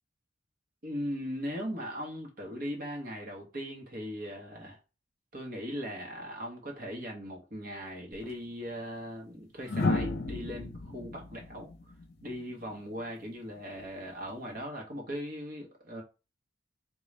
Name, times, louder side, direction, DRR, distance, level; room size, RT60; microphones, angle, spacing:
voice 1, 0.8-4.8 5.3-11.7 12.2-16.0, equal, 50° right, 1.1 m, -39 dB
sound 1, 8.1-8.3 9.7-12.7 14.3-14.6, left 2 dB, 55° left, 0.6 m, -33 dB
3.8 x 2.4 x 3.2 m
head